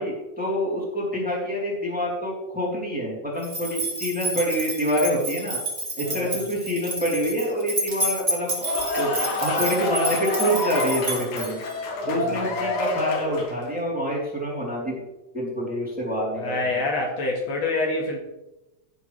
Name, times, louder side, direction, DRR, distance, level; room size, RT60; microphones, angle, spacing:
voice 1, 0.0-5.6 6.0-8.6 9.0-11.6 12.1-15.0 15.3-16.8, equal, 5° right, -5 dB, 3.1 m, -26 dB
sound 1, 3.4-11.7, right 1 dB, 20° right, 2.4 m, -30 dB
voice 2, 6.0-6.4 12.0-12.6 16.3-18.2, left 2 dB, 65° left, 0 dB, 2.7 m, -27 dB
sound 2, 8.4-13.7, left 2 dB, 90° left, 3.1 m, -28 dB
16.5 x 7.2 x 3.3 m, 0.98 s
omnidirectional pair, 3.4 m